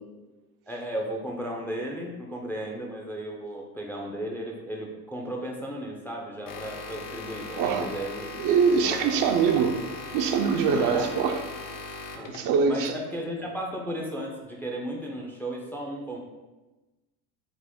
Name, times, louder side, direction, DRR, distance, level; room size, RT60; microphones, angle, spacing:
voice 1, 0.7-8.3 8.8-9.2 10.7-11.1 12.1-12.3 12.7-16.2, right 1 dB, 5° left, 0 dB, 0.4 m, -35 dB
sound 1, 6.5-12.6, left 3 dB, 50° left, 0.7 m, -39 dB
voice 2, 7.6-7.9 8.4-9.8 10.1-11.4 12.3-12.9, right 6 dB, 50° right, 6 dB, 0.5 m, -23 dB
4.9 x 2.0 x 3.6 m, 1.1 s
supercardioid pair, 90°, 42 cm